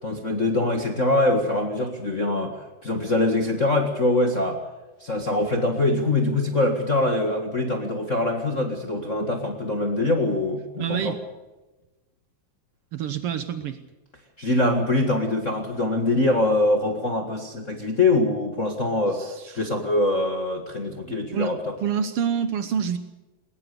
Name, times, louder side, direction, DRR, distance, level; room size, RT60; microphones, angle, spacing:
voice 1, 0.0-4.6 5.0-11.2 14.4-19.2 19.5-21.6, left 2 dB, 35° left, 3 dB, 1.2 m, -23 dB
voice 2, 10.8-11.2 12.9-13.8 19.1-19.5 20.9-21.5 21.8-23.0, right 8 dB, 80° right, 10 dB, 1.3 m, -27 dB
20.5 x 19.5 x 6.8 m, 1.1 s
omnidirectional pair, 4.1 m